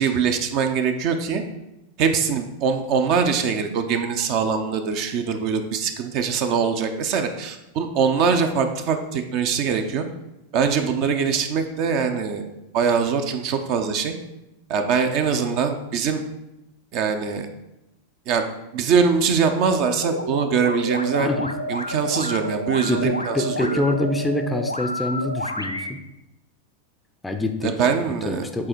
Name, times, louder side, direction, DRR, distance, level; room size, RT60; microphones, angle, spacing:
voice 1, 0.0-1.4 2.0-10.0 10.5-12.5 12.7-14.1 14.7-16.2 16.9-17.5 18.3-18.4 18.7-21.3 21.7-23.8 27.6-28.5, right 6 dB, 40° right, 7 dB, 0.7 m, -22 dB
sound 1, 20.0-25.9, left 1 dB, 85° left, 0.4 m, -30 dB
voice 2, 21.2-21.6 22.9-26.0 27.2-27.7 28.3-28.7, left 2 dB, 10° left, 6 dB, 0.5 m, -25 dB
7.6 x 4.1 x 4.5 m, 0.93 s
figure-of-eight pair, 90°, 0 cm